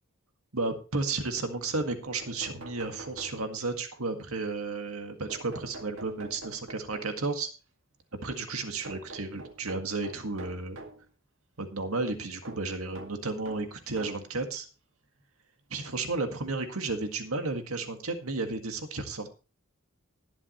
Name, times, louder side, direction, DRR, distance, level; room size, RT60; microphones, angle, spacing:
voice 1, 0.5-7.5 8.2-10.8 11.6-14.7 15.7-19.3, right 3 dB, 85° right, 6 dB, 1.9 m, -33 dB
sound 1, 2.0-3.8 5.3-7.4 8.8-11.1 12.4-14.3 15.2-15.3 16.6-16.7 17.0-17.1, right 2 dB, 65° right, 2.1 m, -46 dB
20.0 x 7.4 x 3.1 m, 0.33 s
head